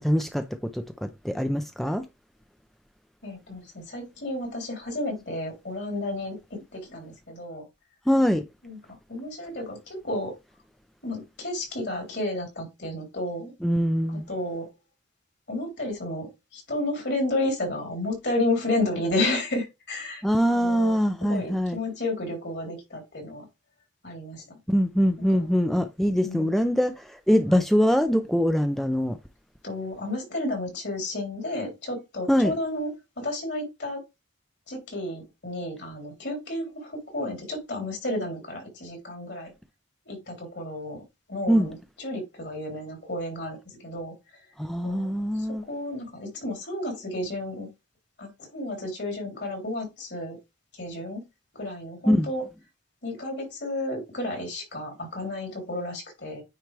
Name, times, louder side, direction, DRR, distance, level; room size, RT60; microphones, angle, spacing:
voice 1, 0.0-2.0 8.1-8.4 13.6-14.3 20.2-21.8 24.7-29.2 32.3-32.5 41.5-41.7 44.6-45.6 52.1-52.3, equal, ahead, 0.4 m, -23 dB
voice 2, 3.2-7.7 8.6-8.8 9.1-10.3 11.0-13.5 14.1-14.7 15.5-20.2 20.5-23.5 24.0-24.6 25.3-25.5 26.2-26.6 27.5-27.6 29.6-34.0 34.7-39.5 40.1-41.0 41.3-44.1 44.8-47.7 48.2-50.4 50.7-51.2 51.5-52.5 53.0-56.4, left 1 dB, 60° left, 3.5 m, -32 dB
9.3 x 4.2 x 3.3 m
head